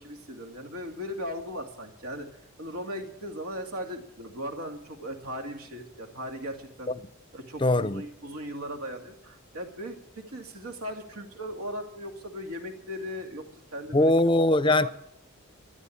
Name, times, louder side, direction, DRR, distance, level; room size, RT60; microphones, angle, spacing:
voice 1, 0.0-2.3 2.6-6.9 7.3-14.1 14.8-14.9, equal, 90° right, 2.4 m, -38 dB
voice 2, 7.6-8.0 13.9-14.9, left 1 dB, 25° left, 0.5 m, -21 dB
13.5 x 11.0 x 8.6 m
head